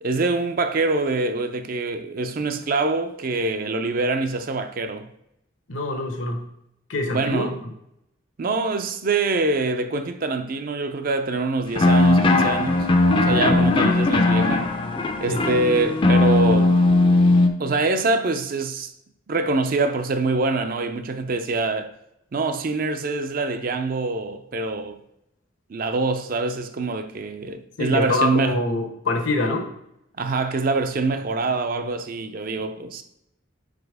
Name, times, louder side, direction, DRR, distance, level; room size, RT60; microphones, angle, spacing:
voice 1, 0.0-5.1 7.1-7.5 8.4-12.9 13.2-14.7 15.2-16.7 17.6-18.9 19.3-21.9 22.3-25.0 25.7-28.6 30.2-33.0, right 3 dB, 45° right, 0.4 m, -25 dB
voice 2, 5.7-6.4 6.9-7.7 13.4-13.6 15.3-15.4 27.8-29.7, left 2 dB, 75° left, 1.0 m, -25 dB
sound 1, 11.7-17.5, left 2 dB, 25° left, 0.5 m, -18 dB
5.0 x 4.1 x 4.7 m
head